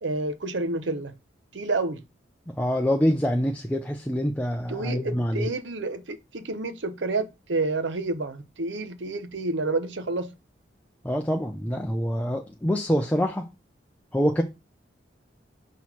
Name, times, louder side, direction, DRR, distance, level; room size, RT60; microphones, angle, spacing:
voice 1, 0.0-1.1 1.5-2.0 4.7-10.3, right 3 dB, 80° right, 0.8 m, -29 dB
voice 2, 2.5-5.5 11.0-13.5 14.1-14.4, equal, 10° left, 0.5 m, -25 dB
5.9 x 3.1 x 5.7 m
head